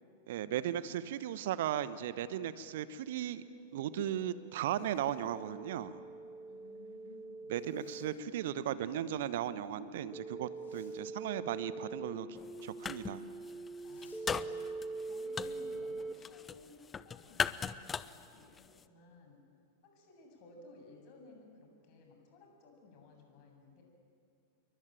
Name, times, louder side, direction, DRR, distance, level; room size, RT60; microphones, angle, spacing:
voice 1, 0.3-3.4 3.7-6.0 7.5-12.3 12.6-13.2, right 11 dB, 55° right, 15 dB, 1.0 m, -36 dB
sound 1, 2.9-16.1, right 3 dB, 5° right, 2.1 m, -45 dB
Zipper (clothing), 4.4-5.5 7.5-8.1 10.4-11.0 13.7-14.2, left 5 dB, 65° left, 6.7 m, -67 dB
voice 2, 6.5-7.6 13.8-19.4 19.8-23.8, left 2 dB, 45° left, 2 dB, 7.6 m, -58 dB
sound 2, 12.4-13.2 13.4-18.8, left 6 dB, 20° left, 0.8 m, -39 dB
28.5 x 23.0 x 9.1 m, 2.3 s
figure-of-eight pair, 90°, 0 cm